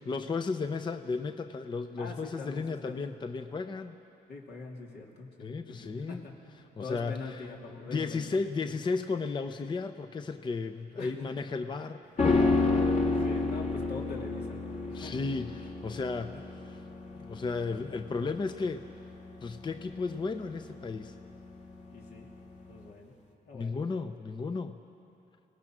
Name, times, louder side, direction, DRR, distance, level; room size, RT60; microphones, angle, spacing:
voice 1, 0.1-4.0 5.4-6.2 6.8-7.4 7.9-12.0 12.3-12.6 14.9-16.3 17.2-18.8 19.4-21.1 23.5-24.8, left 4 dB, 25° left, 8 dB, 0.6 m, -34 dB
voice 2, 2.0-3.0 4.3-6.3 6.8-8.2 11.0-11.1 12.9-14.6 14.8-15.1 16.3-16.4 21.9-22.3 22.7-23.1 23.5-23.8, left 4 dB, 75° left, -1 dB, 3.2 m, -43 dB
sound 1, 12.2-21.6 21.9-22.0, left 3 dB, 45° left, 2.1 m, -30 dB
29.5 x 18.5 x 6.1 m, 2.8 s
cardioid pair, 130°, 17 cm